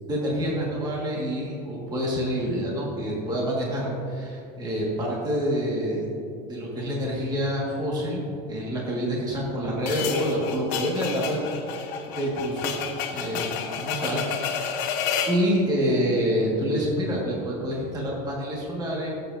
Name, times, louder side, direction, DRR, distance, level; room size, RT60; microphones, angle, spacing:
voice 1, 0.1-6.1 6.5-8.2 8.5-11.4 11.7-12.8 13.1-14.8 15.3-19.2, equal, 20° right, -4 dB, 1.7 m, -27 dB
sound 1, 9.9-15.4, left 7 dB, 55° left, 1.1 m, -30 dB
16.0 x 7.9 x 2.6 m, 2.6 s
cardioid pair, 160°, 21 cm